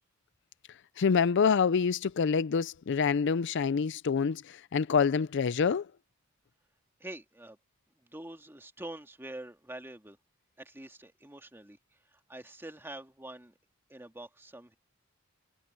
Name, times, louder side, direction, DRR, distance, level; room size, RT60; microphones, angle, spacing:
voice 1, 1.0-5.9, left 6 dB, 60° left, 0.4 m, -26 dB
voice 2, 7.0-7.6 8.1-10.2 10.6-11.8 12.1-13.5 13.9-14.8, right 1 dB, 10° right, 2.0 m, -45 dB
head